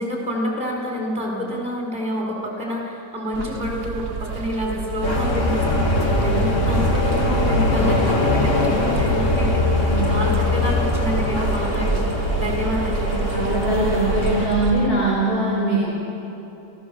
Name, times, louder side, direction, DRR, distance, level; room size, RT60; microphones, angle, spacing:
voice 1, 0.0-12.1 12.3-13.3, equal, 5° right, -3 dB, 4.7 m, -28 dB
sound 1, 3.3-14.9, right 4 dB, 80° right, 1.4 m, -29 dB
sound 2, 5.0-14.5, left 2 dB, 60° left, 2.7 m, -21 dB
voice 2, 13.3-16.0, right 2 dB, 40° left, -6 dB, 4.5 m, -21 dB
29.5 x 15.5 x 7.1 m, 2.9 s
omnidirectional pair, 1.4 m